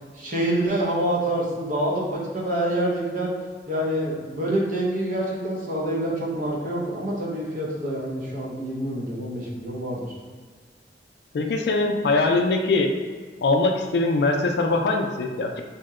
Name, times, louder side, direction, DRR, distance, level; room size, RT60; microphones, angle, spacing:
voice 1, 0.1-3.3 3.7-10.0, right 1 dB, 45° right, -4 dB, 0.6 m, -26 dB
voice 2, 11.3-12.9 13.4-15.6, left 3 dB, 65° left, 3 dB, 0.3 m, -22 dB
2.8 x 2.1 x 3.5 m, 1.5 s
head